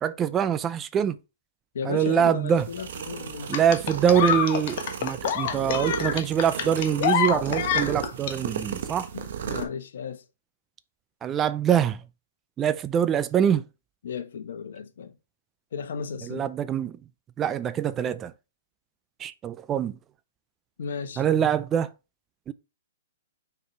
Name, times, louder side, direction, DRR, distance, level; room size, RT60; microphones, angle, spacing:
voice 1, 0.0-1.2 1.8-2.7 3.5-9.1 11.2-12.0 12.6-13.7 16.2-17.0 17.4-18.3 19.2-20.0 21.2-21.9 22.5-22.6, right 9 dB, 20° right, 0.5 m, -24 dB
voice 2, 1.7-3.7 9.1-10.2 14.0-15.2 15.7-16.5 20.8-21.2, left 6 dB, 70° left, 1.2 m, -35 dB
sound 1, 2.6-9.6, right 8 dB, 65° right, 1.3 m, -35 dB
sound 2, 3.5-8.3 9.5-9.6, left 8 dB, 50° left, 1.3 m, -26 dB
6.5 x 4.7 x 3.3 m
hypercardioid pair, 130°, 0 cm